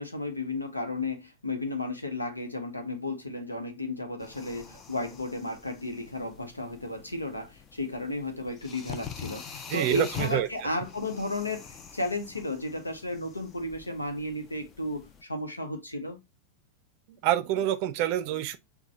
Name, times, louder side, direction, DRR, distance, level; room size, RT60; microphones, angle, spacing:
voice 1, 0.0-16.2, left 2 dB, 80° left, 0.8 m, -34 dB
sound 1, 4.2-15.2, left 7 dB, 25° left, 0.5 m, -45 dB
voice 2, 9.7-10.5 17.1-18.6, right 12 dB, 45° right, 0.5 m, -27 dB
6.0 x 2.2 x 2.6 m
figure-of-eight pair, 90°, 0 cm